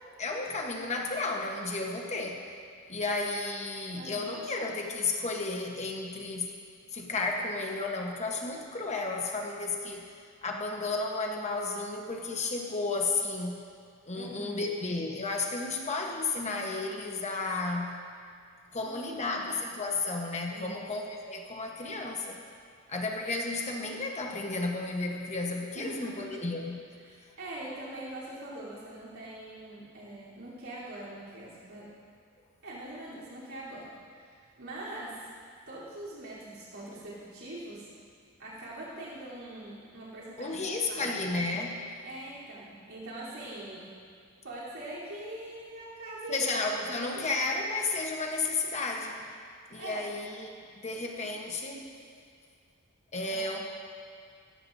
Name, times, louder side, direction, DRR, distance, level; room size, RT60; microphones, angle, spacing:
voice 1, 0.2-2.4 2.9-6.5 6.9-10.0 10.4-13.6 14.1-18.0 18.7-22.4 22.9-26.8 40.4-41.9 46.3-49.2 49.7-51.8 53.1-53.6, left 3 dB, 30° left, 0 dB, 1.1 m, -33 dB
voice 2, 3.9-4.4 14.1-14.6 18.8-19.4 20.5-20.8 25.7-26.4 27.0-31.9 32.6-35.3 35.7-37.9 38.4-40.6 40.9-41.2 42.0-43.9 44.4-46.5 47.1-47.2 49.8-50.1 51.1-51.4 53.2-53.6, right 1 dB, 70° right, -9 dB, 3.4 m, -43 dB
18.0 x 14.0 x 2.7 m, 2.2 s
head